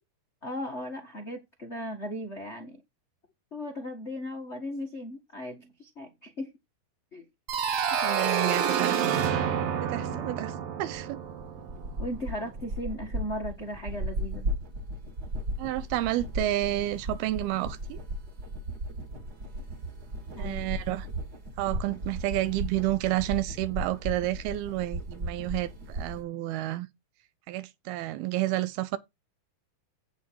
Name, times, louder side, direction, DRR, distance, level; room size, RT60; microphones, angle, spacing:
voice 1, 0.4-2.8 3.5-6.5 7.1-7.2 10.1-10.2 12.0-14.5 20.4-20.6, equal, 75° left, 0.6 m, -37 dB
sound 1, 7.5-12.1, right 7 dB, 70° right, 3.2 m, -28 dB
voice 2, 7.9-9.2 9.8-11.2 15.6-18.0 20.4-21.1 21.6-26.9 27.5-29.0, right 15 dB, 90° right, 2.8 m, -30 dB
sound 2, 10.9-26.2, right 1 dB, 35° right, 2.0 m, -36 dB
8.7 x 7.9 x 4.7 m
omnidirectional pair, 4.3 m